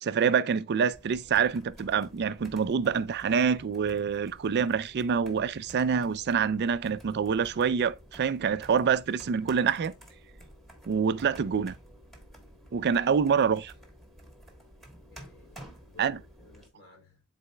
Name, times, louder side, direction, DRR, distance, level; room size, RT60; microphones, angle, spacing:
voice 1, 0.0-9.9 10.9-11.7 12.7-13.7 16.0-16.2, right 6 dB, 50° right, 0.4 m, -26 dB
sound 1, 0.9-16.7, equal, ahead, 1.4 m, -52 dB
voice 2, 15.1-17.2, left 3 dB, 50° left, 3.2 m, -57 dB
11.0 x 4.1 x 2.2 m
head